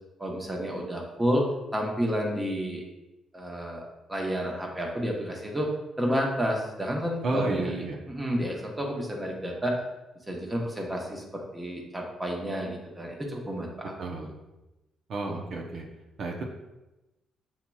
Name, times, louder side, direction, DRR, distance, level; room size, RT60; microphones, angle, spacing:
voice 1, 0.2-1.4 1.7-2.8 3.3-3.8 4.1-5.7 6.0-9.8 10.3-13.9, equal, 15° right, -1 dB, 1.0 m, -30 dB
voice 2, 7.2-8.0 14.0-14.4 15.1-15.8 16.2-16.4, right 2 dB, 60° right, 0 dB, 0.6 m, -32 dB
7.3 x 2.8 x 2.3 m, 1.0 s
cardioid pair, 90°, 0 cm